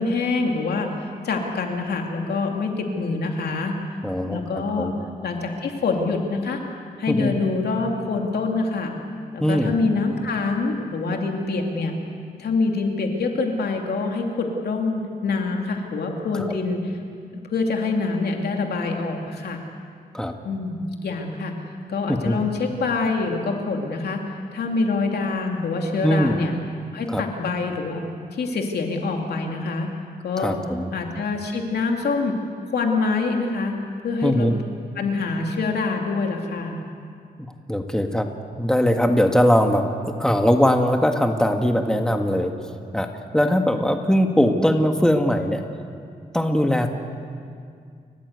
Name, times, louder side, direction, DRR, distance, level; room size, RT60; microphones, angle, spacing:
voice 1, 0.0-3.7 4.2-4.9 5.2-6.6 7.0-9.0 9.3-11.9 12.4-16.9 17.4-19.6 20.4-21.6 21.9-24.2 24.5-26.5 26.9-28.0 28.3-29.9 30.2-30.6 30.9-32.4 32.7-33.7 34.0-34.5 35.0-36.8, left 3 dB, 85° left, 2 dB, 2.8 m, -25 dB
voice 2, 4.0-4.9 7.1-7.3 9.4-9.7 16.4-16.5 20.1-20.3 22.1-22.4 26.0-26.4 27.1-27.2 30.4-30.9 34.2-34.5 37.4-38.3 38.6-42.5 42.9-43.1 43.3-45.6 46.3-46.9, equal, 5° left, 4 dB, 1.8 m, -20 dB
30.0 x 15.0 x 8.2 m, 2.3 s
cardioid pair, 90°, 16 cm